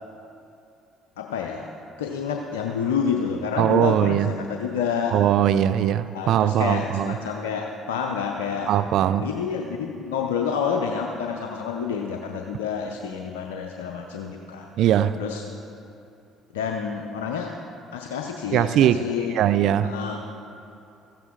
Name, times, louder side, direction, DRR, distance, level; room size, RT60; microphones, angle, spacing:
voice 1, 1.2-1.7 2.0-5.1 6.1-8.7 9.2-14.9 15.2-15.4 16.5-17.6 17.9-19.4 19.8-20.2, left 6 dB, 85° left, 0.6 m, -28 dB
voice 2, 3.6-4.3 5.1-7.2 8.7-9.3 14.8-15.2 18.5-19.0 19.3-19.9, right 11 dB, 65° right, 0.3 m, -20 dB
14.5 x 13.0 x 3.8 m
hypercardioid pair, 55°, 0 cm